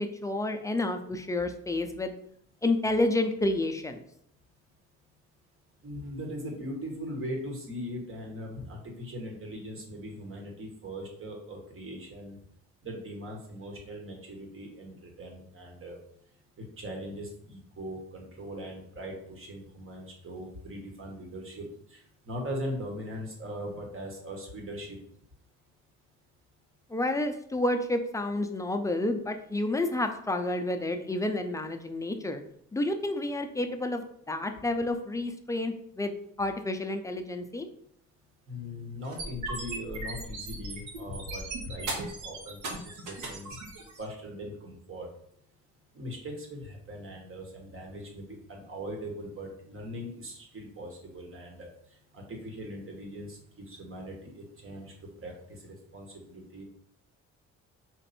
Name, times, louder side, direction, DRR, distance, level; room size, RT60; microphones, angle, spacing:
voice 1, 0.0-2.1 2.6-4.0 26.9-32.4 32.7-37.7, left 2 dB, 10° left, 6 dB, 0.5 m, -30 dB
voice 2, 5.8-12.4 12.8-16.0 16.6-25.0 38.5-43.6 44.0-45.1 45.9-51.7 52.1-56.6, equal, 45° right, 1 dB, 1.5 m, -40 dB
sound 1, 39.0-44.0, right 2 dB, 80° right, 1.4 m, -37 dB
4.4 x 2.6 x 4.1 m, 0.68 s
cardioid pair, 90°, 30 cm